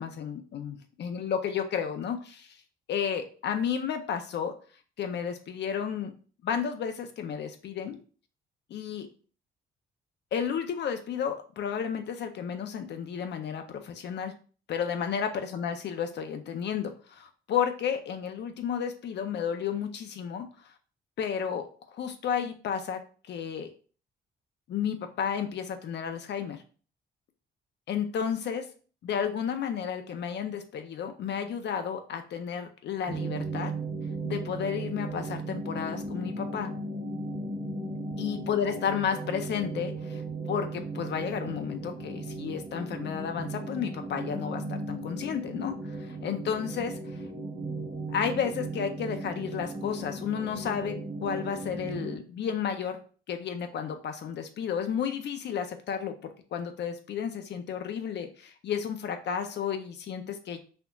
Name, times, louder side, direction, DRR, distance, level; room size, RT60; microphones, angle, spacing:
voice 1, 0.0-2.6 2.9-4.5 5.0-6.1 6.4-8.0 8.7-9.1 10.3-14.3 14.7-20.5 21.2-21.7 22.0-23.0 23.3-23.7 24.7-26.6 27.9-28.7 29.0-33.7 34.2-36.7 38.2-40.2 40.5-47.0 48.1-50.9 51.2-53.0 53.3-60.6, left 7 dB, 60° left, 6 dB, 0.6 m, -32 dB
sound 1, 33.1-52.2, right 2 dB, 45° right, 1.2 m, -36 dB
4.3 x 2.8 x 2.3 m, 0.39 s
cardioid pair, 90°, 20 cm